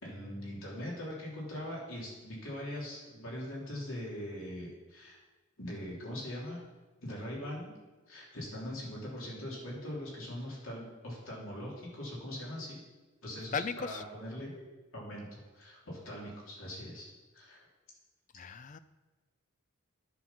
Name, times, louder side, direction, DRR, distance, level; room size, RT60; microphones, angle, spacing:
voice 1, 0.0-5.2 5.6-6.6 7.0-7.7 8.1-12.8 13.2-14.6 14.9-17.6, left 1 dB, 70° left, -4 dB, 3.2 m, -41 dB
voice 2, 13.5-14.0 18.4-18.8, left 5 dB, 35° left, 14 dB, 0.4 m, -36 dB
9.9 x 5.8 x 5.8 m, 1.2 s
head